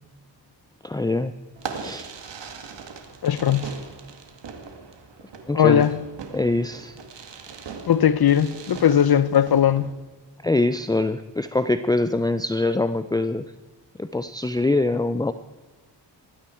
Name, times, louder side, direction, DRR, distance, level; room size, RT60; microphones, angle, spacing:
voice 1, 0.8-1.3 1.7-2.1 5.5-5.9 6.3-7.0 10.4-13.5 14.0-15.3, left 2 dB, 10° left, 0.6 m, -24 dB
Fireworks, 1.6-9.9, right 5 dB, 75° right, 2.1 m, -40 dB
voice 2, 3.2-3.7 5.5-6.0 7.9-9.9, left 9 dB, 60° left, 1.0 m, -19 dB
20.0 x 14.5 x 4.6 m
cardioid pair, 65°, 43 cm